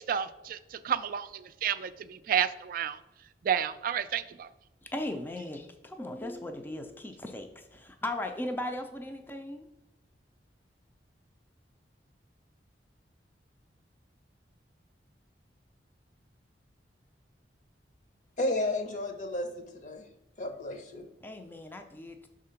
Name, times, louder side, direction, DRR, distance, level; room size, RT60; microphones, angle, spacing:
voice 1, 0.0-3.0 3.4-4.5, right 8 dB, 50° right, 11 dB, 0.3 m, -31 dB
voice 2, 4.8-9.7 21.2-22.3, left 1 dB, 10° left, 5 dB, 0.4 m, -37 dB
voice 3, 18.4-20.0 20.4-21.1, left 1 dB, 45° left, 6 dB, 0.8 m, -32 dB
5.8 x 3.7 x 5.7 m, 0.96 s
head